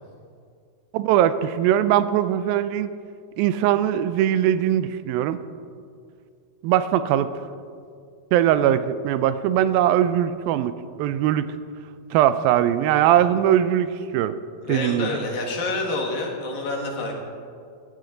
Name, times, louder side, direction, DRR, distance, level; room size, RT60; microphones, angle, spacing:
voice 1, 0.9-2.9 3.4-5.4 6.6-7.3 8.3-11.6 12.1-14.4 14.7-15.1, right 11 dB, 90° right, 13 dB, 2.4 m, -21 dB
voice 2, 14.6-17.1, left 2 dB, 75° left, 0 dB, 3.7 m, -28 dB
17.5 x 13.0 x 3.9 m, 2.3 s
omnidirectional pair, 4.1 m